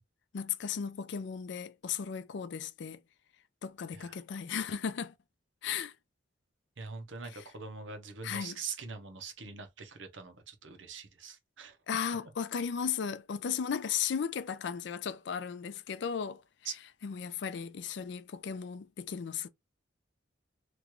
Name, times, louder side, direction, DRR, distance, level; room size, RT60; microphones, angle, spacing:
voice 1, 0.3-3.0 3.6-5.1 5.6-5.9 7.3-7.4 8.2-8.6 11.9-16.4 17.0-19.5, left 7 dB, 65° left, 0.4 m, -35 dB
voice 2, 6.8-11.8 16.6-16.7, right 5 dB, 75° right, 0.8 m, -43 dB
3.0 x 2.4 x 3.0 m
head